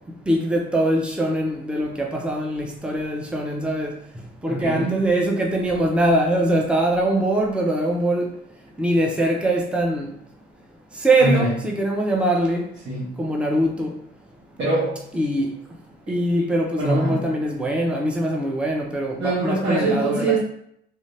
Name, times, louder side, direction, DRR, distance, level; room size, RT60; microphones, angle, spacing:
voice 1, 0.3-3.9 4.4-8.3 8.8-10.1 11.0-12.7 13.2-13.9 15.1-15.5 16.1-20.3, right 1 dB, 5° right, 0.6 m, -22 dB
voice 2, 4.5-5.1 11.2-11.5 12.8-13.2 14.6-15.0 16.7-17.3 19.2-20.4, right 2 dB, 70° right, 1.4 m, -23 dB
3.2 x 2.6 x 3.3 m
cardioid pair, 90°, 20 cm